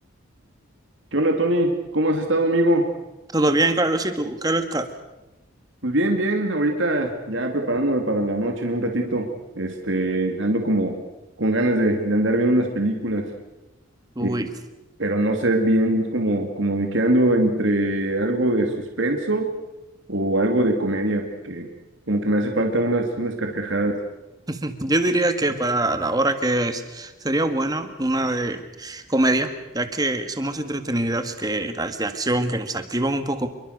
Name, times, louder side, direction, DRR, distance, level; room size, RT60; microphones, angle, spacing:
voice 1, 1.1-2.9 5.8-9.3 9.6-11.0 11.4-13.3 14.2-14.4 15.0-19.5 20.1-21.7 22.1-24.0, right 1 dB, 65° right, 3 dB, 2.8 m, -22 dB
voice 2, 3.3-4.9 14.2-14.5 24.5-33.5, right 1 dB, 20° right, 8 dB, 1.8 m, -24 dB
27.0 x 23.0 x 6.7 m, 1.0 s
head